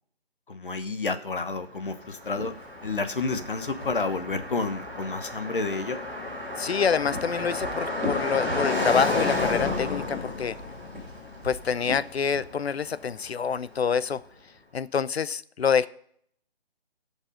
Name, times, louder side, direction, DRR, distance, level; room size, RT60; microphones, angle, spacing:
voice 1, 0.5-2.5 2.8-6.1, left 3 dB, 55° left, 9 dB, 1.2 m, -30 dB
Car passing by, 1.6-13.6, left 2 dB, 15° left, 2.8 m, -32 dB
sound 1, 2.3-4.9 6.6-9.1 10.0-12.6, left 2 dB, ahead, 1.3 m, -39 dB
voice 2, 6.6-10.6 11.4-14.2 14.7-15.9, left 6 dB, 80° left, 17 dB, 0.7 m, -26 dB
16.0 x 5.4 x 5.1 m, 0.63 s
hypercardioid pair, 175°, 32 cm